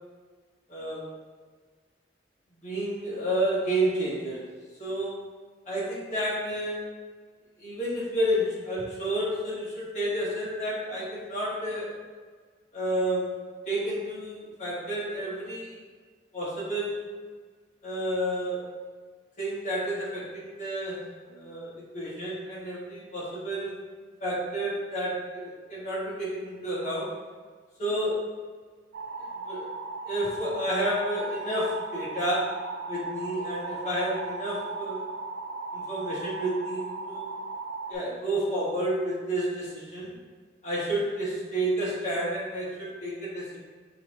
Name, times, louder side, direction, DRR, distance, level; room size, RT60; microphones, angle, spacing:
voice 1, 0.7-1.1 2.6-4.5 4.8-5.2 5.6-6.9 7.6-12.0 12.7-13.4 13.6-15.8 16.3-17.1 17.8-18.7 19.4-23.8 24.2-27.2 27.8-28.2 29.5-29.7 30.0-32.6 32.9-35.0 35.7-37.3 37.9-40.1 40.6-43.6, right 1 dB, 45° left, -7 dB, 1.4 m, -30 dB
sound 1, 28.9-38.0, right 3 dB, 85° right, 0.4 m, -37 dB
6.6 x 2.9 x 2.3 m, 1.5 s
head